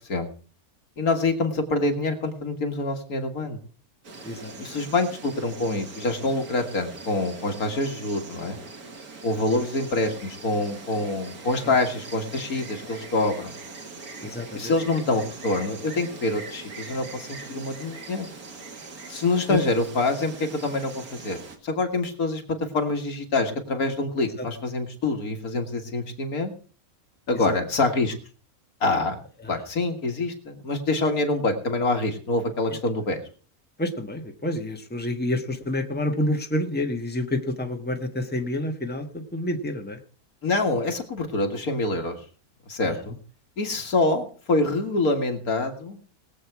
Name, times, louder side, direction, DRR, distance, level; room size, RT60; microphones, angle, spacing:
voice 1, 1.0-3.6 4.6-8.6 9.2-13.5 14.5-18.3 19.1-22.4 22.7-26.5 27.3-28.1 28.8-29.2 29.5-33.2 40.4-42.2 42.7-43.2 43.6-46.0, left 2 dB, 75° left, 4 dB, 2.3 m, -26 dB
Insect, 4.0-21.6, right 3 dB, 80° right, 2.4 m, -42 dB
voice 2, 4.2-4.7 9.6-9.7 11.6-11.8 14.2-14.7 19.5-19.6 24.4-24.5 27.3-27.6 29.4-29.6 33.8-40.0 42.8-43.0, left 1 dB, 5° left, 4 dB, 1.3 m, -29 dB
21.0 x 7.9 x 4.7 m, 0.41 s
omnidirectional pair, 1.5 m